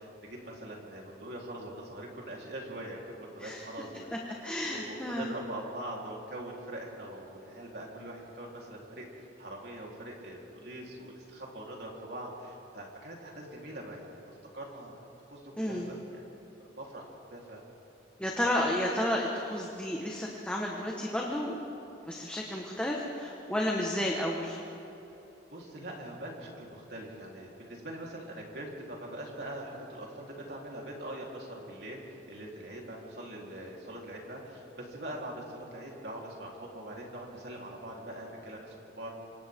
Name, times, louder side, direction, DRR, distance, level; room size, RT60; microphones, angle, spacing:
voice 1, 0.0-15.0 15.3-16.2 16.7-17.6 25.5-39.2, right 1 dB, 60° right, -3 dB, 4.0 m, -43 dB
voice 2, 4.4-5.3 15.6-15.9 18.2-21.6 22.0-24.6, left 1 dB, 5° left, -2 dB, 1.5 m, -32 dB
27.0 x 26.0 x 3.8 m, 2.9 s
head